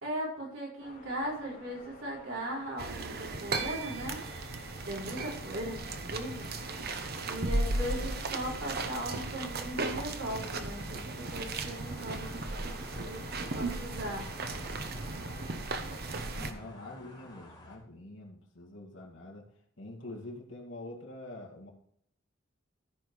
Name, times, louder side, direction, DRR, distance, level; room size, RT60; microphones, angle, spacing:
voice 1, 0.0-4.2 4.8-6.5 7.2-14.3, equal, 75° right, -4 dB, 4.4 m, -38 dB
sound 1, 0.8-16.3, left 3 dB, 45° left, 2.8 m, -51 dB
sound 2, 2.8-16.5, right 3 dB, 50° right, 0.9 m, -36 dB
sound 3, 11.8-17.8, left 1 dB, 20° left, 2.6 m, -52 dB
voice 2, 16.3-19.5 19.8-21.7, left 2 dB, 65° left, 0 dB, 2.1 m, -45 dB
13.5 x 5.2 x 4.6 m, 0.66 s
head